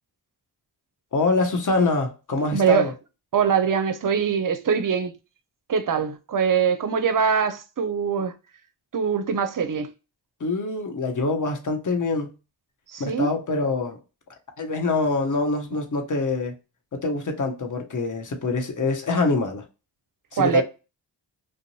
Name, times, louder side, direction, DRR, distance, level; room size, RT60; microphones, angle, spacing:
voice 1, 1.1-2.9 10.4-12.3 13.0-14.0 14.6-16.5 16.9-19.6 20.3-20.6, left 3 dB, 40° left, 0.8 m, -25 dB
voice 2, 2.5-2.9 3.3-5.1 5.7-8.3 8.9-9.9 12.9-13.3 20.4-20.6, right 6 dB, 45° right, 0.6 m, -22 dB
2.5 x 2.0 x 2.9 m
cardioid pair, 45°, 47 cm